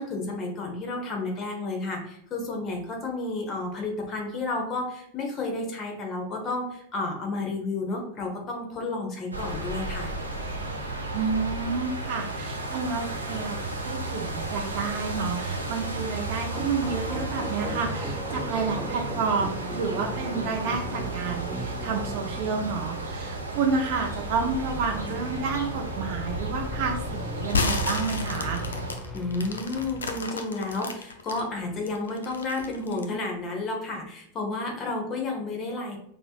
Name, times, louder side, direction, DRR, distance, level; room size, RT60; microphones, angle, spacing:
voice 1, 0.0-10.1 29.1-36.0, left 2 dB, 30° left, 1 dB, 1.0 m, -31 dB
sound 1, 9.3-28.9, right 2 dB, 80° right, 0.8 m, -33 dB
voice 2, 11.1-28.6, right 5 dB, 45° right, 2 dB, 0.5 m, -30 dB
sound 2, 16.5-30.2, equal, ahead, 0.6 m, -38 dB
sound 3, 27.5-31.4 31.9-33.2, left 4 dB, 70° left, 0.5 m, -31 dB
5.8 x 2.9 x 2.4 m, 0.73 s
figure-of-eight pair, 90°, 0 cm